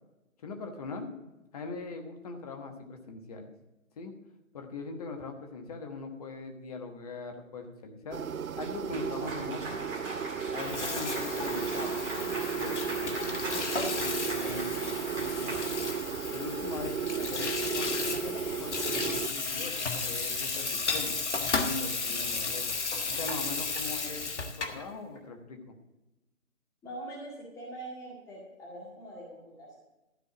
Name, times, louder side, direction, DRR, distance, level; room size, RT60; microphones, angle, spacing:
voice 1, 0.4-3.5 4.0-4.1 4.5-8.2 8.6-9.8 10.5-12.0 12.5-15.7 16.3-21.1 21.6-22.7 23.1-25.7, left 4 dB, 30° left, 5 dB, 1.2 m, -41 dB
sound 1, 8.1-19.3, right 7 dB, 85° right, 0.5 m, -34 dB
Cheering / Applause, 8.6-16.3, right 2 dB, 20° right, 2.1 m, -40 dB
Water tap faucet / Sink (filling or washing), 10.5-24.8, left 4 dB, 55° left, 1.5 m, -34 dB
voice 2, 26.8-29.8, right 1 dB, 10° left, -4 dB, 1.9 m, -43 dB
12.5 x 4.5 x 8.4 m, 0.98 s
figure-of-eight pair, 145°, 41 cm